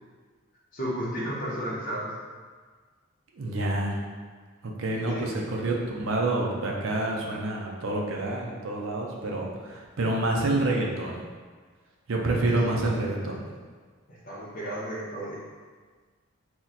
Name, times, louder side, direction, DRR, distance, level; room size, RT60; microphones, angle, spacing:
voice 1, 0.7-2.1 5.1-5.3 14.1-15.4, equal, 40° left, -7 dB, 0.6 m, -33 dB
voice 2, 3.3-4.0 4.6-11.2 12.1-13.4, right 2 dB, 65° right, -1 dB, 0.5 m, -28 dB
2.9 x 2.1 x 3.9 m, 1.5 s
head